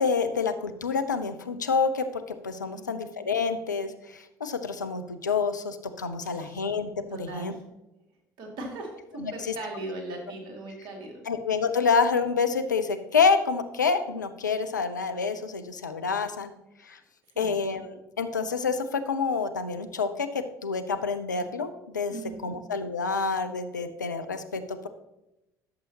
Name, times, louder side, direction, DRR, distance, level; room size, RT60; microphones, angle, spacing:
voice 1, 0.0-2.1 2.4-7.5 9.2-9.5 11.3-16.5 16.8-17.0 17.4-21.7 21.9-22.1 22.4-24.9, left 5 dB, 85° left, 8 dB, 0.5 m, -28 dB
voice 2, 2.7-3.0 6.2-6.7 7.1-7.6 8.4-11.1 17.3-17.5 22.1-22.6, right 2 dB, 55° right, 1 dB, 2.3 m, -39 dB
11.5 x 6.8 x 2.9 m, 0.92 s
figure-of-eight pair, 55°, 10 cm